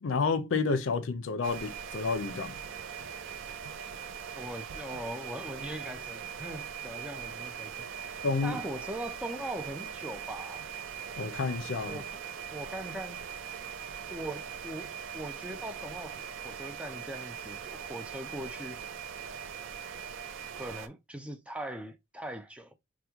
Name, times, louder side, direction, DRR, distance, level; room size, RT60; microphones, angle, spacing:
voice 1, 0.0-2.5 8.2-8.6 11.2-12.0, left 4 dB, 80° left, 0.5 m, -30 dB
sound 1, 1.4-20.9, right 8 dB, 75° right, 0.4 m, -41 dB
voice 2, 4.3-10.7 11.8-12.2 12.5-13.2 14.1-14.9 15.1-16.2 16.4-18.8 20.5-22.7, right 1 dB, 5° right, 0.4 m, -41 dB
3.0 x 2.2 x 3.4 m
head